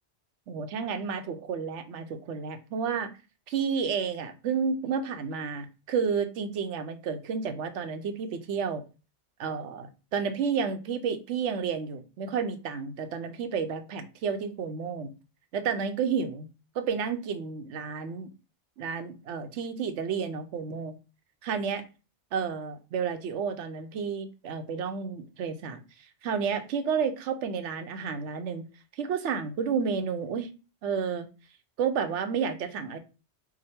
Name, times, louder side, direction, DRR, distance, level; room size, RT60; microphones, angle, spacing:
voice 1, 0.5-3.1 3.5-8.8 9.4-15.1 15.5-16.5 16.7-18.3 18.8-21.0 21.4-21.8 22.3-25.8 26.2-28.6 28.9-30.5 30.8-31.3 31.8-33.0, right 6 dB, 85° right, 8 dB, 1.0 m, -31 dB
4.9 x 2.2 x 4.2 m, 0.32 s
omnidirectional pair, 1.2 m